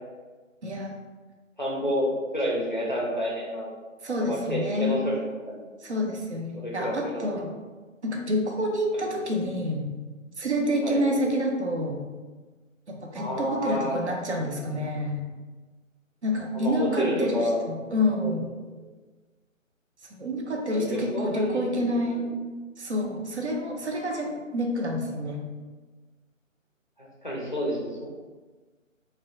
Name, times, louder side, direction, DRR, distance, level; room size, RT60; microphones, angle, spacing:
voice 1, 0.6-0.9 4.0-5.0 5.8-7.5 8.0-9.9 10.4-12.0 12.9-15.3 16.2-18.5 20.1-22.3 22.8-25.4, left 1 dB, 55° right, 1 dB, 0.5 m, -28 dB
voice 2, 1.6-3.7 4.2-5.2 5.5-5.6 6.6-7.4 8.9-9.1 10.8-11.0 13.1-14.0 14.3-14.5 16.5-17.6 18.2-18.3 18.8-18.9 20.7-22.2 27.0-27.8, equal, 40° left, -5 dB, 0.4 m, -29 dB
2.9 x 2.1 x 2.5 m, 1.3 s
figure-of-eight pair, 155°, 40 cm